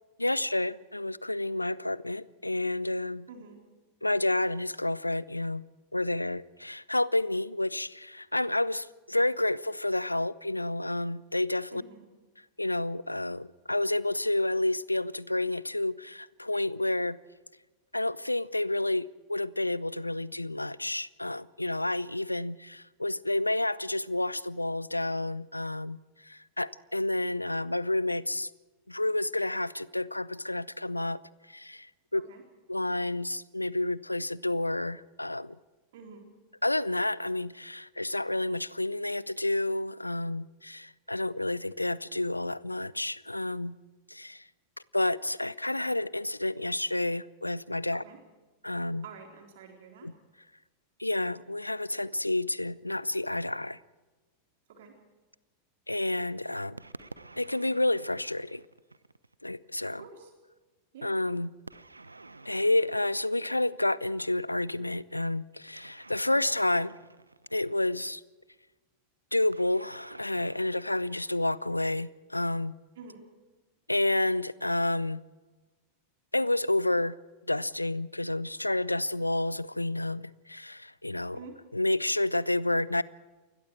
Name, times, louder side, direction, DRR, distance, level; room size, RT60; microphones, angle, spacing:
voice 1, 0.2-3.3 4.0-5.6 5.9-11.8 12.6-17.2 17.9-26.0 26.3-28.5 28.9-31.2 31.5-31.9 32.1-32.2 32.7-35.5 36.6-43.8 44.1-44.4 44.9-48.0 48.6-49.0 50.0-50.1 51.0-53.8 55.9-56.8 57.4-58.6 59.4-60.0 61.0-61.5 62.5-66.9 67.5-68.2 69.3-72.7 73.9-75.2 76.3-77.2 77.5-81.4 81.7-83.0, left 1 dB, 85° left, 0.6 m, -30 dB
voice 2, 3.3-3.6 11.7-12.1 32.1-32.4 35.9-36.3 47.9-48.2 49.0-50.1 54.7-55.0 59.9-60.3 60.9-61.2 66.4-66.5 73.0-73.3 81.3-81.6, right 5 dB, 55° right, 4.0 m, -48 dB
sound 1, 56.8-59.4 61.7-64.0 65.7-68.1 69.5-72.0, right 3 dB, 80° right, 0.9 m, -51 dB
28.0 x 21.5 x 4.7 m
figure-of-eight pair, 90°, 0 cm